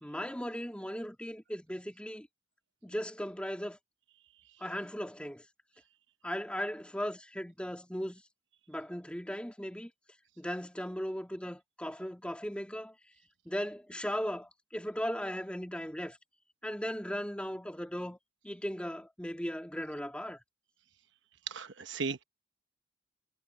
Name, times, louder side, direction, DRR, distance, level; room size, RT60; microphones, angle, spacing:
voice 1, 0.0-2.3 2.8-3.8 4.6-5.4 6.2-8.2 8.7-9.9 10.4-12.9 13.4-16.2 16.6-18.2 18.4-20.4, equal, 5° left, 2.9 m, -37 dB
voice 2, 21.5-22.2, right 5 dB, 70° right, 1.0 m, -37 dB
head